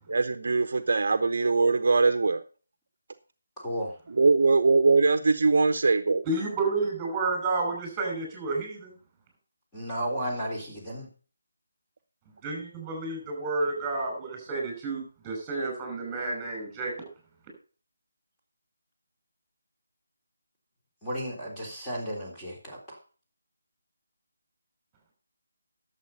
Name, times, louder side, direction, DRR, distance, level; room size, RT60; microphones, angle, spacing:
voice 1, 0.1-2.4 4.1-6.2, right 3 dB, 55° right, 11 dB, 0.9 m, -22 dB
voice 2, 3.6-3.9 9.7-11.1 21.0-23.0, equal, 10° left, -5 dB, 3.7 m, -33 dB
voice 3, 6.3-8.9 12.4-17.1, right 3 dB, 10° right, 2 dB, 5.8 m, -30 dB
12.0 x 7.5 x 5.5 m, 0.39 s
figure-of-eight pair, 160°, 0 cm